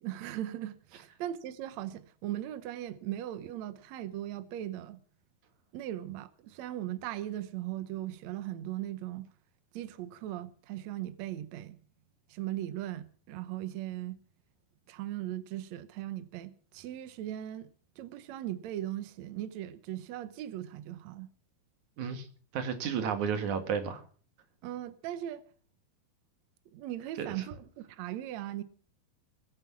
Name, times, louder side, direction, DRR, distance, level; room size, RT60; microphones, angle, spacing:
voice 1, 0.0-5.0 5.7-9.3 9.7-11.8 12.3-14.2 14.9-17.7 18.0-21.3 24.6-25.4 26.7-28.6, right 13 dB, 80° right, 1.6 m, -38 dB
voice 2, 22.5-24.0 27.2-27.4, right 7 dB, 55° right, 2.9 m, -32 dB
20.5 x 9.8 x 6.0 m
omnidirectional pair, 4.5 m